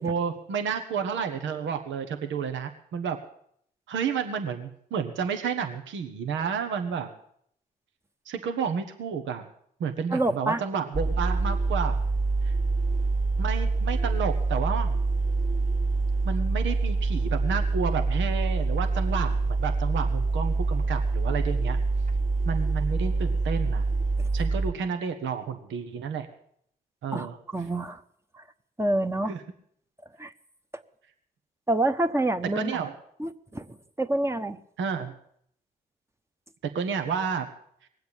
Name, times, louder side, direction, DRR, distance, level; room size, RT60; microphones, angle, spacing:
voice 1, 0.0-3.2 3.9-7.1 8.3-9.5 9.8-12.0 12.4-12.5 13.4-15.0 16.2-21.8 22.4-23.8 24.3-26.3 27.0-27.4 29.3-29.4 32.5-32.9 34.8-35.1 36.7-37.5, right 6 dB, 75° right, 7 dB, 1.3 m, -31 dB
voice 2, 10.1-10.6 24.2-24.3 27.1-28.0 28.8-29.3 30.2-30.3 31.7-32.8 33.2-33.7 34.0-34.6, right 1 dB, 15° right, 7 dB, 1.1 m, -27 dB
sound 1, 10.9-24.7, right 3 dB, 40° right, 2.1 m, -26 dB
19.5 x 8.0 x 8.9 m, 0.69 s
hypercardioid pair, 45°, 20 cm